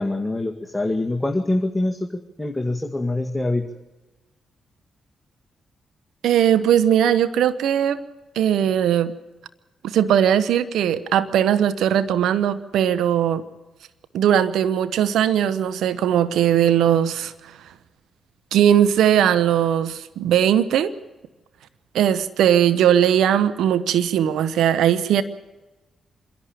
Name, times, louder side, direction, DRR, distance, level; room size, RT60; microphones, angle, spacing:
voice 1, 0.0-3.7, left 2 dB, 10° left, 2 dB, 2.1 m, -25 dB
voice 2, 6.2-8.0 8.3-9.1 9.8-13.4 14.1-17.6 18.5-20.9 21.9-25.2, right 10 dB, 75° right, 14 dB, 0.9 m, -19 dB
26.5 x 11.5 x 9.2 m, 1.1 s
hypercardioid pair, 40°, 0 cm